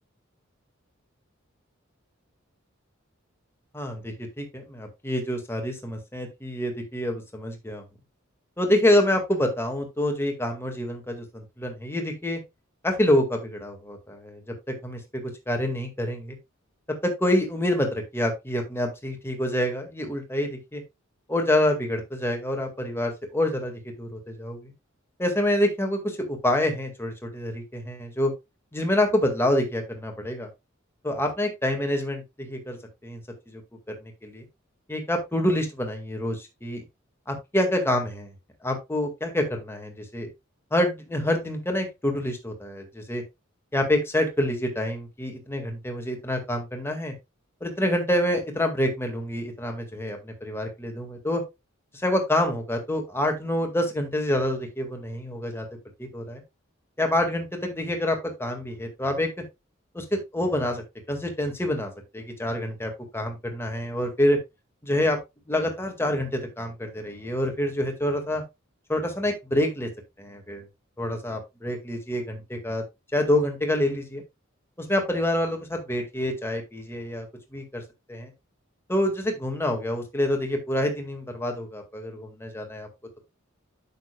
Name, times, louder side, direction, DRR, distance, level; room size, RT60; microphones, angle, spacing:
voice 1, 3.7-7.8 8.6-12.4 12.8-14.4 14.7-16.4 17.0-20.8 21.3-24.7 25.2-28.3 28.7-30.5 31.0-32.8 33.0-33.2 33.5-33.6 33.9-34.4 34.9-36.8 37.3-38.3 38.6-40.3 40.7-43.2 43.7-47.1 47.6-51.4 52.0-55.7 56.0-56.4 57.0-59.3 59.9-64.4 64.8-65.2 65.5-68.4 68.9-69.9 70.2-70.7 71.0-72.8 73.1-74.2 74.8-77.3 77.5-77.8 78.1-78.3 78.9-82.9, left 1 dB, 10° left, 3 dB, 2.0 m, -27 dB
9.1 x 7.2 x 2.3 m, 0.22 s
head